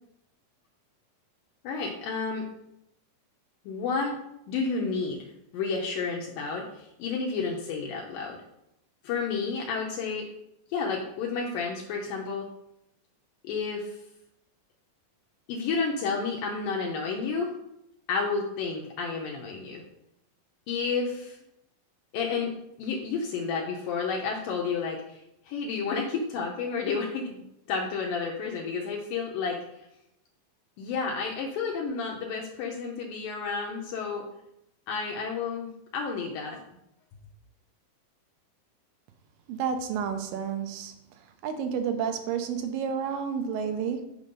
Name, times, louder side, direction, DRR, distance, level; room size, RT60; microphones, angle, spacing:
voice 1, 1.6-2.5 3.7-4.2 4.5-5.3 5.5-8.4 9.0-10.3 10.7-12.5 13.4-14.0 15.5-17.5 18.1-19.8 20.7-21.4 22.1-27.4 27.7-29.6 30.8-34.3 34.9-36.6, left 5 dB, 80° left, 0 dB, 2.5 m, -31 dB
voice 2, 39.5-40.9 41.4-44.1, right 7 dB, 75° right, 8 dB, 2.3 m, -30 dB
6.5 x 5.2 x 5.3 m, 0.82 s
omnidirectional pair, 4.1 m